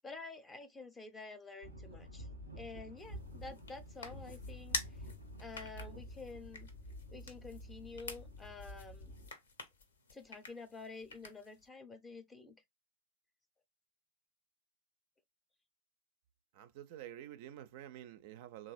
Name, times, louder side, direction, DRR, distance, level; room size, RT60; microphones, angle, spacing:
voice 1, 0.0-2.3 2.6-4.8 5.4-6.7 7.1-9.2 10.1-12.6, left 3 dB, 15° left, 0.6 m, -49 dB
sound 1, 1.6-9.3, left 1 dB, 90° left, 1.0 m, -49 dB
sound 2, 3.0-11.7, left 4 dB, 70° left, 0.6 m, -48 dB
voice 2, 16.5-18.7, right 12 dB, 50° right, 0.4 m, -49 dB
3.2 x 2.4 x 2.3 m
figure-of-eight pair, 90°, 0 cm